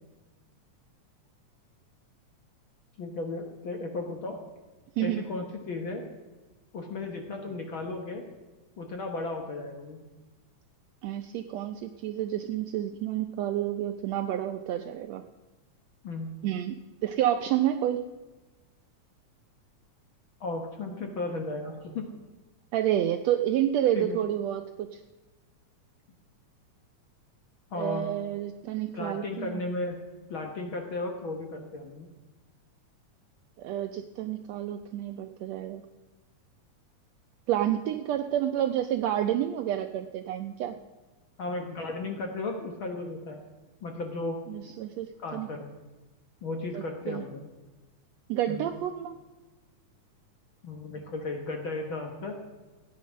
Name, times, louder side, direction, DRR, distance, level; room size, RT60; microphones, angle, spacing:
voice 1, 3.0-4.4 5.0-6.1 6.7-8.2 8.8-10.0 16.0-16.3 20.4-22.1 23.9-24.2 27.7-28.1 28.9-30.0 30.3-32.1 41.4-43.4 43.8-44.4 45.2-45.7 46.4-47.5 48.5-48.7 50.6-52.3, left 2 dB, 55° left, 3 dB, 1.5 m, -35 dB
voice 2, 11.0-15.2 16.4-18.0 22.7-25.0 27.7-29.5 33.6-35.8 37.5-40.8 44.5-45.5 46.7-47.2 48.3-49.1, right 11 dB, 80° right, 7 dB, 1.6 m, -29 dB
16.0 x 9.5 x 6.3 m, 1.2 s
omnidirectional pair, 3.6 m